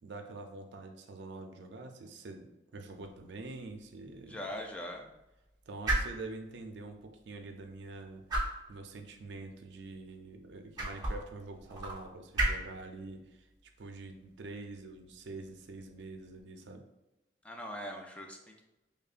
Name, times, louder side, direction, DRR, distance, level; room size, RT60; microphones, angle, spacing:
voice 1, 0.0-4.4 5.7-8.2 8.7-13.5 13.8-16.9, right 3 dB, 75° right, 5 dB, 0.4 m, -46 dB
sound 1, 2.8-16.4, right 1 dB, 25° right, 0.8 m, -39 dB
voice 2, 4.3-5.1 17.4-18.6, equal, 5° left, 1 dB, 0.3 m, -41 dB
5.1 x 2.2 x 2.4 m, 0.95 s
head